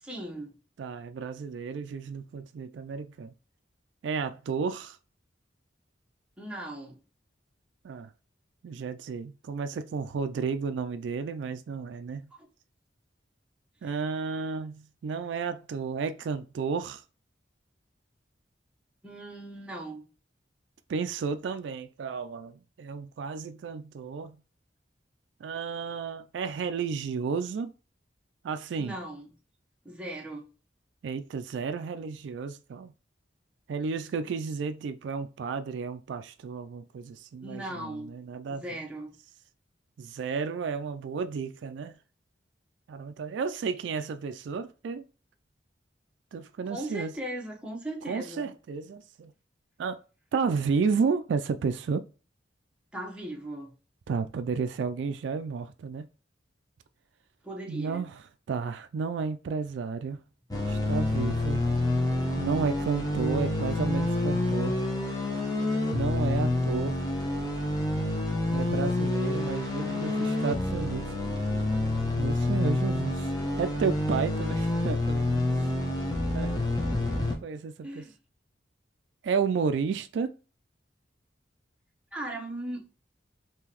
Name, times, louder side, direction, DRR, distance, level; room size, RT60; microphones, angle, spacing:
voice 1, 0.0-0.5 6.4-7.0 12.3-12.5 13.8-13.9 19.0-20.1 28.8-29.3 29.8-30.4 37.4-38.1 38.4-39.1 46.6-48.5 52.9-53.7 57.4-58.1 75.6-76.0 77.8-78.1 82.1-82.9, right 1 dB, 5° right, 0.8 m, -38 dB
voice 2, 0.8-3.3 4.0-5.0 7.8-8.1 8.6-12.3 13.8-17.0 20.9-24.4 25.4-27.7 28.4-28.9 31.0-32.9 33.7-38.6 40.0-42.0 42.9-45.0 46.3-47.1 48.1-49.3 49.8-50.0 50.3-52.0 54.1-56.1 57.7-58.1 58.5-60.2 60.6-61.6 62.4-64.8 65.9-67.0 68.5-71.0 72.2-73.3 73.6-75.4 76.3-76.5 77.4-78.0 79.2-80.3, right 5 dB, 75° right, 0.3 m, -32 dB
sound 1, 60.5-77.4, left 2 dB, 20° left, 0.9 m, -28 dB
3.7 x 2.9 x 2.9 m
head